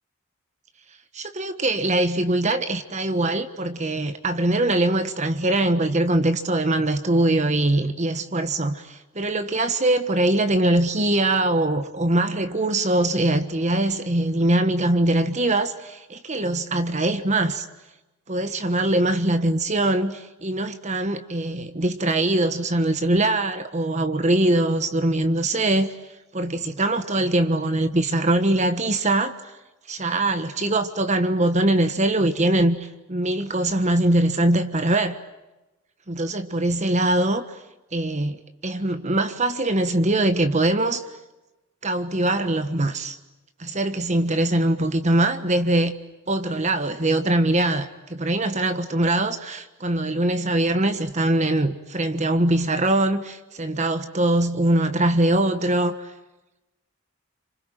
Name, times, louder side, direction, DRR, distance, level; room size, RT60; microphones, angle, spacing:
voice 1, 1.1-17.7 18.3-25.9 26.3-29.4 29.9-35.2 36.1-37.4 37.9-38.4 38.6-41.0 41.8-43.2 43.6-45.9 46.3-56.1, right 1 dB, 35° right, 1.4 m, -22 dB
29.0 x 26.5 x 7.7 m
head